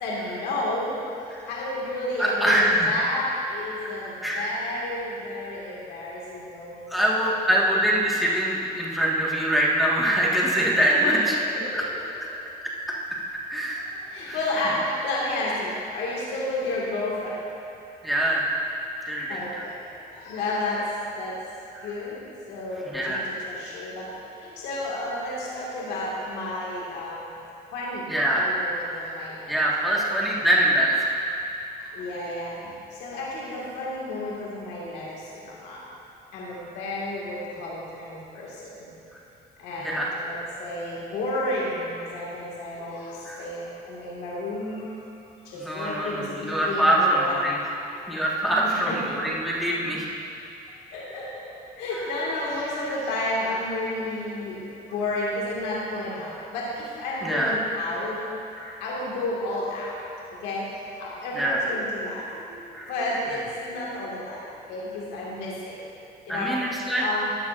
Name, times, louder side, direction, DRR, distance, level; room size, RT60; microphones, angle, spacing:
voice 1, 0.0-0.9 1.5-7.3 7.5-7.6 10.9-11.2 11.6-12.1 13.7-17.5 19.3-19.8 20.1-20.8 21.1-21.4 21.8-27.3 27.7-29.6 29.8-30.0 31.8-35.8 36.3-39.0 39.6-45.0 45.4-47.4 47.7-48.2 48.6-49.0 50.9-51.3 51.5-58.2 58.8-60.0 60.4-62.5 62.9-65.8 66.3-67.3, left 1 dB, 90° left, -5 dB, 1.9 m, -32 dB
voice 2, 2.2-2.9 4.2-4.5 6.9-11.3 11.7-11.8 13.5-13.8 14.2-14.4 18.0-18.5 19.0-19.6 21.7-21.9 22.8-23.2 28.1-29.0 29.5-31.2 39.8-40.1 43.2-43.4 45.6-47.6 48.1-50.1 57.2-57.5 58.6-58.8 61.3-61.6 62.7-62.9 66.3-67.0, right 1 dB, ahead, -5 dB, 1.6 m, -24 dB
13.5 x 9.4 x 2.5 m, 2.8 s
cardioid pair, 110°, 17 cm